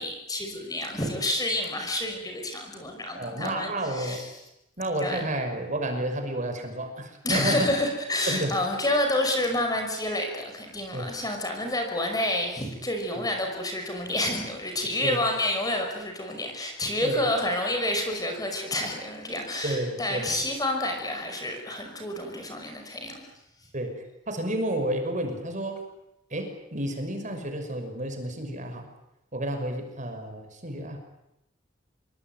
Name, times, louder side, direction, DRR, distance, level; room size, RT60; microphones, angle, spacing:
voice 1, 0.0-4.3 5.0-5.2 7.2-23.3, left 1 dB, 20° left, 3 dB, 5.6 m, -29 dB
voice 2, 3.1-4.3 4.8-7.7 8.3-8.6 10.9-11.2 15.0-15.2 17.0-17.3 19.6-20.4 23.7-25.8 26.3-28.9 29.3-31.0, right 1 dB, 40° right, 6 dB, 5.7 m, -31 dB
27.0 x 23.0 x 9.2 m, 0.87 s
head